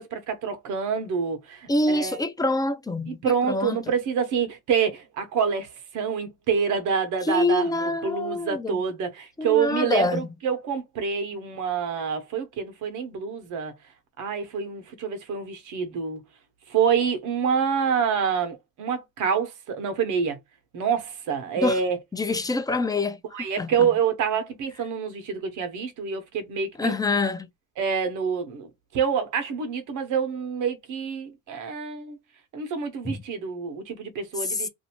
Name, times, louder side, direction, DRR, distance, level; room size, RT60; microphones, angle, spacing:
voice 1, 0.0-2.2 3.1-5.7 5.9-7.7 8.0-13.7 14.2-16.2 16.7-20.4 20.7-22.0 23.3-26.9 27.8-32.2 32.5-34.7, right 6 dB, 85° right, 1.0 m, -27 dB
voice 2, 1.7-3.9 7.2-8.8 9.4-10.3 21.6-21.8 22.1-23.2 23.6-23.9 26.8-27.5 33.0-33.2 34.4-34.7, left 2 dB, 10° left, 0.5 m, -26 dB
2.7 x 2.5 x 2.8 m
cardioid pair, 90°, 30 cm